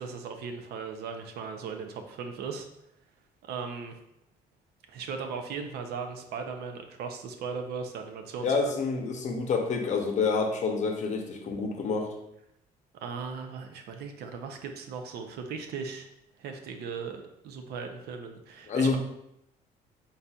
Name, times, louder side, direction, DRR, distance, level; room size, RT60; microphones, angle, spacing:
voice 1, 0.0-2.7 3.5-4.0 4.9-8.8 13.0-16.1 16.4-19.0, right 5 dB, 75° right, 5 dB, 0.6 m, -38 dB
voice 2, 8.4-12.1 18.7-19.0, left 4 dB, 45° left, 3 dB, 0.7 m, -28 dB
4.1 x 3.9 x 2.3 m, 0.82 s
cardioid pair, 110°, 17 cm